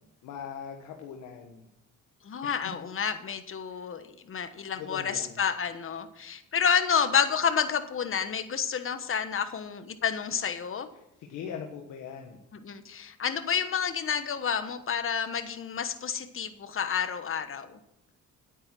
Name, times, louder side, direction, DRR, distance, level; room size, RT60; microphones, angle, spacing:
voice 1, 0.2-1.7 2.4-2.7 3.8-3.9 4.8-5.4 11.2-12.4, left 7 dB, 90° left, 2 dB, 1.4 m, -41 dB
voice 2, 2.2-10.9 12.5-17.8, left 7 dB, 45° left, 10 dB, 1.2 m, -29 dB
9.9 x 8.9 x 6.1 m, 0.84 s
cardioid pair, 90°, 30 cm